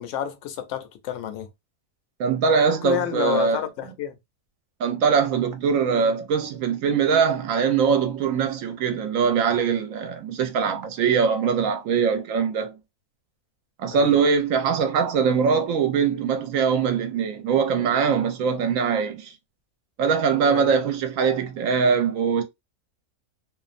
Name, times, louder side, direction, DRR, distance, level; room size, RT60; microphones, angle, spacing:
voice 1, 0.0-1.5 2.7-4.2 13.9-14.1 20.4-20.7, left 10 dB, 70° left, 0.9 m, -30 dB
voice 2, 2.2-3.6 4.8-12.7 13.8-19.3 20.0-22.4, right 6 dB, 70° right, 0.9 m, -22 dB
2.6 x 2.1 x 2.5 m
omnidirectional pair, 1.5 m